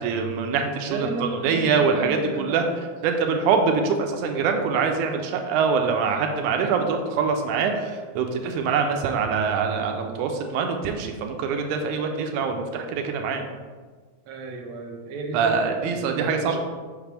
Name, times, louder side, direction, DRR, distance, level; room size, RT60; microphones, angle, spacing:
voice 1, 0.0-1.0 1.4-2.6 3.0-7.7 8.2-13.4 15.3-16.6, right 5 dB, 90° right, 4 dB, 2.1 m, -24 dB
voice 2, 0.8-2.8 6.6-6.8 14.3-16.6, right 3 dB, 75° right, 2 dB, 1.9 m, -33 dB
6.0 x 5.7 x 3.4 m, 1.5 s
omnidirectional pair, 3.5 m